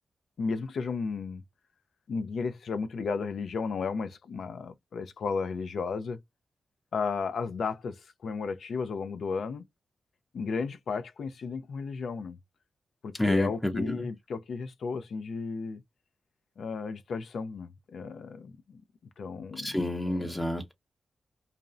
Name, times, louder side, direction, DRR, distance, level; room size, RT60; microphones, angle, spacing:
voice 1, 0.4-1.4 2.1-6.2 6.9-9.6 10.3-12.4 13.0-15.8 16.6-18.8 19.2-19.8 20.2-20.3, left 5 dB, 75° left, 0.4 m, -34 dB
voice 2, 13.1-14.1 19.5-20.7, left 1 dB, 15° left, 0.5 m, -29 dB
2.5 x 2.0 x 2.4 m
cardioid pair, 75°, 0 cm